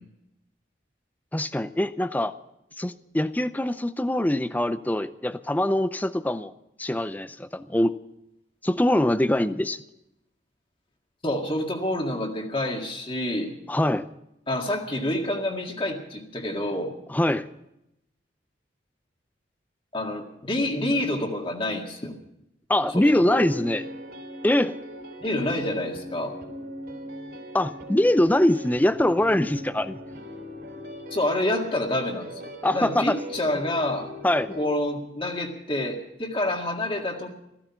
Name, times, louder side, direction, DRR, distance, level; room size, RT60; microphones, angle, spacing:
voice 1, 1.3-2.3 2.8-6.5 6.8-7.9 8.6-9.8 13.7-14.1 17.1-17.5 22.7-23.8 24.4-24.8 27.5-30.0 32.6-33.2 34.2-34.6, left 1 dB, 10° left, 13 dB, 0.5 m, -23 dB
voice 2, 11.2-13.6 14.5-17.0 19.9-22.2 22.9-23.8 25.2-26.4 31.1-34.1 34.5-37.3, left 1 dB, 30° left, 3 dB, 1.9 m, -28 dB
sound 1, 23.1-34.7, equal, 55° right, 3.5 m, -40 dB
15.0 x 15.0 x 5.8 m, 0.84 s
head